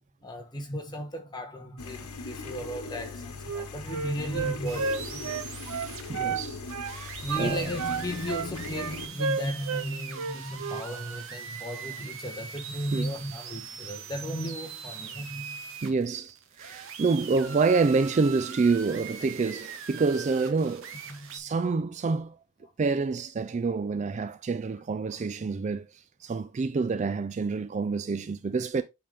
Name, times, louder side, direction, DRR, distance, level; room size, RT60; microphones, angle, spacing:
voice 1, 0.2-5.3 7.2-15.6 21.1-21.4, equal, 20° left, 1.3 m, -35 dB
sound 1, 1.8-9.1, left 3 dB, 75° left, 1.3 m, -39 dB
Wind instrument woodwind instrument, 3.4-6.4 6.7-7.0 7.3-9.9 10.1-10.9, right 5 dB, 90° right, 0.5 m, -32 dB
sound 2, 4.6-21.4, right 7 dB, 60° right, 1.2 m, -42 dB
voice 2, 6.1-7.6 12.9-13.1 15.8-20.9 21.3-22.4 22.8-28.8, right 4 dB, 30° right, 0.3 m, -27 dB
8.5 x 3.8 x 3.5 m
head